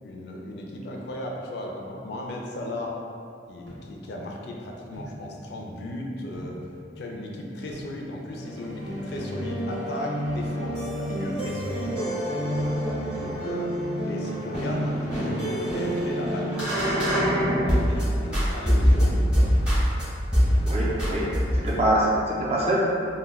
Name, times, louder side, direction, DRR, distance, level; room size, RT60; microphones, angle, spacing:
voice 1, 0.0-3.0 3.5-11.9 12.6-13.7 14.1-19.5, left 1 dB, 60° left, 0 dB, 0.3 m, -36 dB
sound 1, 3.7-3.9 4.9-5.3 6.3-6.7 7.7-8.0 9.2-9.5 10.5-10.8 11.8-12.2 13.2-13.5 14.5-14.8 16.0-16.2 17.4-17.7 18.8-18.9, equal, 80° right, 0.8 m, -42 dB
sound 2, 8.3-18.0 18.3-20.0 20.3-20.7 21.0-21.8, equal, 5° right, 0.7 m, -25 dB
voice 2, 20.6-22.8, right 1 dB, 30° right, -4 dB, 0.4 m, -25 dB
2.2 x 2.2 x 3.3 m, 2.4 s
head